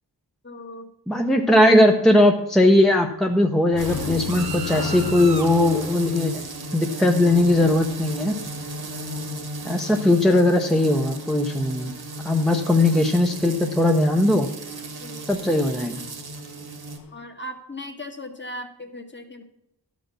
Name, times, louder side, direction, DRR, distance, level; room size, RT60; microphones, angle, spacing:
voice 1, 0.4-0.9 15.0-15.3 17.1-19.4, left 1 dB, 25° left, 5 dB, 1.3 m, -37 dB
voice 2, 1.1-6.3 6.7-8.3 9.6-11.9 12.2-14.5 15.3-16.0, left 1 dB, ahead, 3 dB, 0.7 m, -19 dB
sound 1, 3.7-9.1 16.4-16.6 17.0-17.1, left 8 dB, 50° left, 0.6 m, -35 dB
sound 2, 3.8-17.0, right 1 dB, 60° right, 1.5 m, -34 dB
11.5 x 5.3 x 6.2 m, 0.81 s
wide cardioid pair, 75°, 43 cm